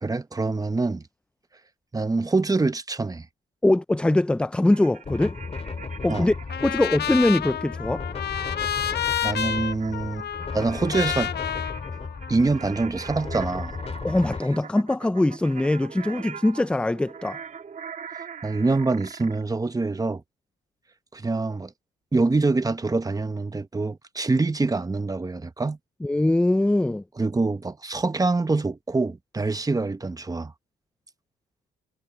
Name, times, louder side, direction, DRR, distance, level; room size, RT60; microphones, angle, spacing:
voice 1, 0.0-1.0 1.9-3.3 6.1-6.3 8.8-8.9 9.2-10.3 10.5-11.3 12.3-13.7 18.4-20.2 21.1-21.7 22.1-25.8 27.2-30.5, right 3 dB, 20° right, 1.1 m, -25 dB
voice 2, 3.6-5.4 6.0-6.3 6.6-8.0 14.0-17.4 26.0-27.0, left 1 dB, 5° left, 0.4 m, -22 dB
sound 1, 4.7-6.7 8.3-19.4, right 6 dB, 40° right, 1.7 m, -42 dB
sound 2, 5.0-14.4, left 4 dB, 30° left, 3.1 m, -35 dB
Trumpet, 6.5-12.7, left 9 dB, 55° left, 1.0 m, -30 dB
cardioid pair, 90°, 20 cm